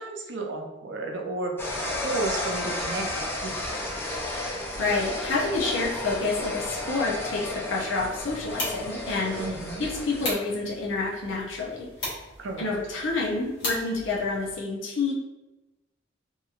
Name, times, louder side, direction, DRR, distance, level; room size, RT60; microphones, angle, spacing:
voice 1, 0.0-1.7 2.0-3.8 9.4-9.9 12.4-12.7, right 2 dB, 70° right, 2 dB, 0.5 m, -33 dB
sound 1, 1.6-10.3, left 1 dB, 10° left, 0.4 m, -32 dB
voice 2, 4.8-9.4 9.8-12.2 12.6-15.1, left 3 dB, 85° left, -4 dB, 0.6 m, -28 dB
sound 2, 8.2-14.6, left 1 dB, 65° left, 1.2 m, -38 dB
2.9 x 2.7 x 2.4 m, 1.1 s
head